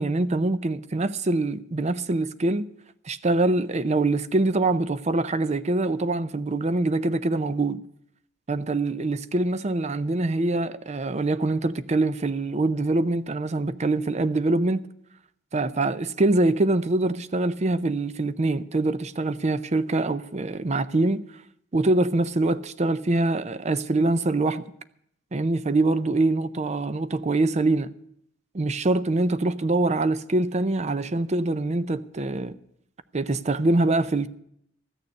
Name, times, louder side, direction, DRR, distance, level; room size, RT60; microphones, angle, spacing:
voice 1, 0.0-2.7 3.1-7.8 8.5-14.8 15.5-21.2 21.7-24.7 25.3-27.9 28.5-32.6 33.1-34.3, right 2 dB, 35° right, 0.6 m, -24 dB
14.0 x 6.7 x 9.7 m
head